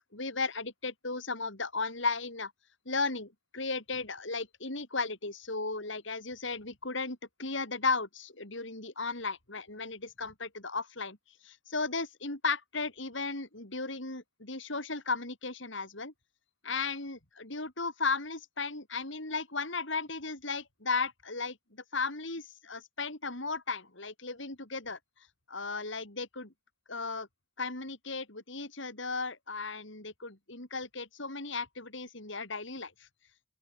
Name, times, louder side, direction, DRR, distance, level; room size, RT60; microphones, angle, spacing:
voice 1, 0.1-2.5 2.9-11.2 11.4-16.1 16.6-25.0 25.5-26.5 26.9-27.3 27.6-32.9, left 4 dB, 60° left, 3.7 m, -35 dB
open air
head